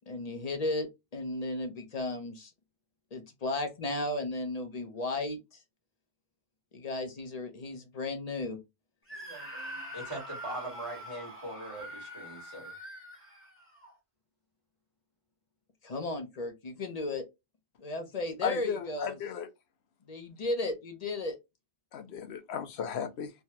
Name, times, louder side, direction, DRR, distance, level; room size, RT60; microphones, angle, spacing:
voice 1, 0.1-2.5 3.1-5.6 6.7-8.6 15.8-17.2 17.8-19.2 20.1-21.4, left 2 dB, 40° left, 0.7 m, -35 dB
Screaming, 9.1-13.9, equal, 10° left, 0.9 m, -44 dB
voice 2, 9.1-12.7, right 1 dB, 30° right, 1.5 m, -42 dB
voice 3, 18.4-19.5 21.9-23.3, left 7 dB, 70° left, 0.9 m, -35 dB
3.2 x 2.3 x 2.7 m
omnidirectional pair, 1.2 m